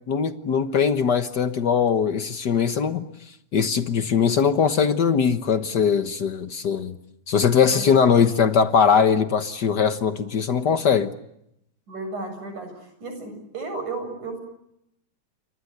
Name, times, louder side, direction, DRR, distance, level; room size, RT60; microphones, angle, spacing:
voice 1, 0.1-3.0 3.5-6.9 7.3-11.1, left 6 dB, 70° left, 1.0 m, -21 dB
voice 2, 11.9-14.4, right 3 dB, 70° right, 8.8 m, -33 dB
29.5 x 25.0 x 8.1 m
omnidirectional pair, 3.6 m